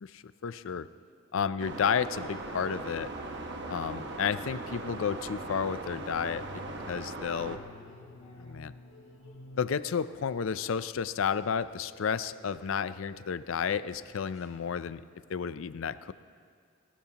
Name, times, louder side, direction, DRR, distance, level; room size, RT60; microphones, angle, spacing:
voice 1, 0.0-0.9 1.3-3.1 3.7-6.5 6.9-7.6 8.4-8.7 9.6-15.0 15.3-16.1, left 7 dB, 70° left, 15 dB, 0.4 m, -32 dB
sound 1, 1.6-7.6, right 2 dB, 55° right, 1.1 m, -39 dB
sound 2, 3.1-9.7, left 2 dB, 85° left, 0.8 m, -51 dB
sound 3, 6.3-8.6 8.8-14.8, equal, 35° left, 3.1 m, -57 dB
29.5 x 12.5 x 2.9 m, 2.1 s
head